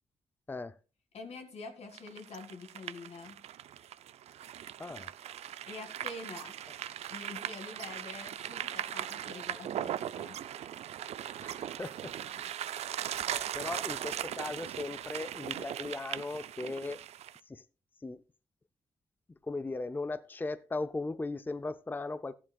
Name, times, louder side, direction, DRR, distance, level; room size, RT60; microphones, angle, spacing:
voice 1, 1.1-3.4 5.6-6.5 7.1-10.4, left 3 dB, 80° left, 2.1 m, -46 dB
sound 1, 1.9-17.4, right 11 dB, 90° right, 0.4 m, -39 dB
voice 2, 4.8-5.1 11.4-17.0 17.5-17.6 18.0-18.2 19.4-22.4, left 3 dB, 20° left, 0.5 m, -38 dB
14.5 x 11.0 x 2.3 m
cardioid pair, 75°, 11 cm